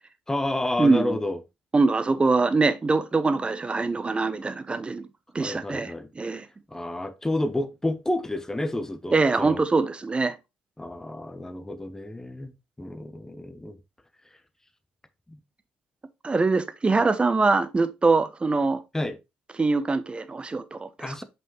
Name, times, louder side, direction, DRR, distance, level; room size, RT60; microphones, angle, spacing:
voice 1, 0.3-1.4 5.4-6.1 6.7-9.6 10.8-12.5 12.8-13.8 15.3-15.4 18.9-19.2 21.0-21.2, left 1 dB, 10° left, 1.0 m, -30 dB
voice 2, 0.8-1.2 1.7-5.1 5.3-6.5 9.1-10.4 16.2-18.8 19.6-21.2, right 3 dB, 25° right, 0.8 m, -23 dB
5.5 x 5.5 x 3.1 m
hypercardioid pair, 50°, 4 cm